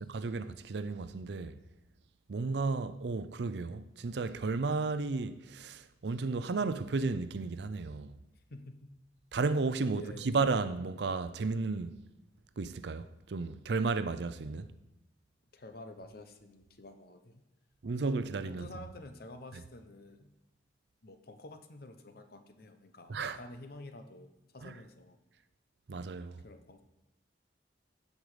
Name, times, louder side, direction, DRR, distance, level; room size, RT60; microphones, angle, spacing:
voice 1, 0.0-1.6 2.3-8.1 9.3-11.9 12.6-14.7 17.8-18.7 19.5-19.6 23.1-23.4 24.6-24.7 25.9-26.4, right 3 dB, 65° right, 0.5 m, -33 dB
voice 2, 8.5-8.9 10.0-10.3 15.5-17.4 18.4-20.3 21.0-25.2 26.4-26.8, left 2 dB, 55° left, 0.9 m, -50 dB
15.5 x 5.4 x 5.0 m
head